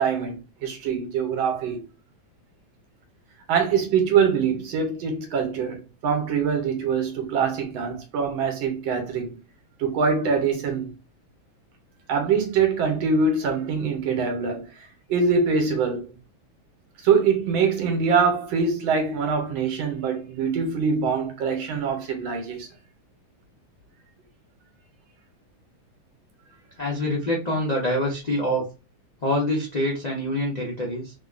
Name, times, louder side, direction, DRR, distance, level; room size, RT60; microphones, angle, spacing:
voice 1, 0.0-1.9 3.5-9.3 9.8-10.9 12.1-14.6 15.1-16.1 17.0-22.7, right 5 dB, 85° right, 1.6 m, -24 dB
voice 2, 26.8-28.7 29.2-31.1, left 1 dB, 65° left, 0.4 m, -25 dB
3.5 x 2.2 x 2.4 m
omnidirectional pair, 2.2 m